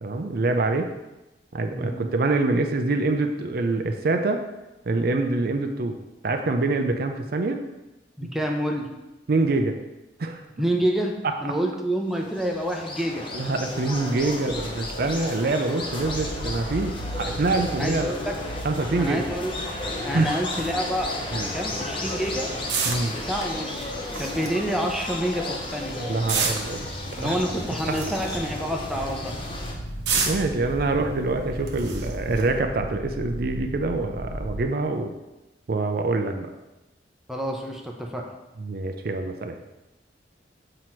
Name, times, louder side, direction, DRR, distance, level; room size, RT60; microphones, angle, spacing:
voice 1, 0.0-0.9 1.5-4.4 4.9-6.0 6.2-7.6 9.3-9.7 10.2-10.4 13.3-18.1 18.6-19.3 20.1-20.3 21.3-21.5 22.9-23.1 26.0-26.9 27.2-27.4 27.9-28.1 30.3-35.1 35.7-36.5 38.6-39.6, right 3 dB, 55° right, 5 dB, 0.5 m, -25 dB
voice 2, 8.2-8.9 10.6-11.1 11.4-13.2 17.8-18.3 19.0-19.6 20.0-21.1 21.5-22.5 23.1-26.0 27.2-29.3 37.3-38.3, equal, ahead, 1 dB, 0.6 m, -28 dB
sound 1, 12.1-29.7, left 2 dB, 30° left, 0.8 m, -34 dB
sound 2, 16.0-34.6, equal, 65° left, 2.0 m, -37 dB
sound 3, 20.5-32.6, right 5 dB, 75° right, 0.9 m, -34 dB
7.7 x 2.9 x 4.4 m, 1.0 s
head